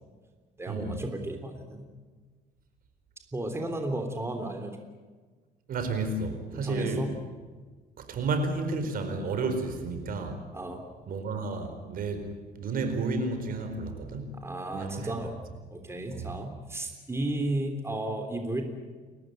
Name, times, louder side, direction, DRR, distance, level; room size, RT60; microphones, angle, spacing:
voice 1, 0.6-1.8 3.3-4.8 6.5-7.1 10.5-10.8 14.3-15.3 15.7-18.6, right 1 dB, 15° right, 5 dB, 3.4 m, -33 dB
voice 2, 5.7-7.1 8.0-10.4 11.1-12.2 12.6-14.3 14.7-15.1 16.1-16.3, right 3 dB, 55° right, 7 dB, 4.5 m, -31 dB
30.0 x 14.5 x 9.4 m, 1.4 s
cardioid pair, 110°, 17 cm